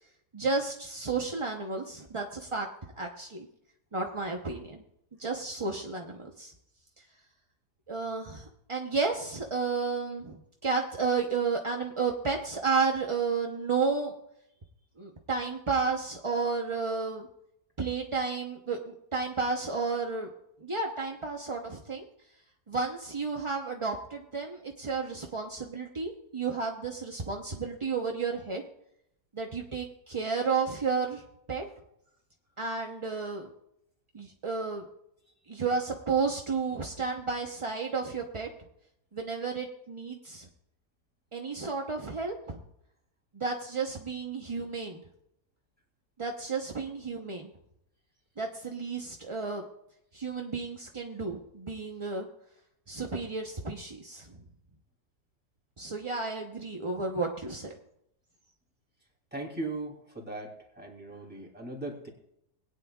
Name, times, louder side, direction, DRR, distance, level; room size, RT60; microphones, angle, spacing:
voice 1, 0.3-2.7 3.0-3.5 3.9-4.8 5.2-6.5 7.9-14.1 15.0-17.3 17.8-20.3 20.6-22.1 22.7-28.6 29.3-31.2 31.5-31.6 32.6-33.5 34.1-34.8 35.5-38.5 39.1-40.5 41.3-42.6 43.3-45.0 46.2-47.5 48.4-49.6 50.1-52.3 52.9-54.3 55.8-57.7, right 4 dB, 30° right, 1 dB, 0.6 m, -32 dB
voice 2, 59.3-62.1, right 2 dB, 5° right, -2 dB, 2.8 m, -38 dB
20.5 x 9.6 x 2.3 m, 0.78 s
omnidirectional pair, 1.7 m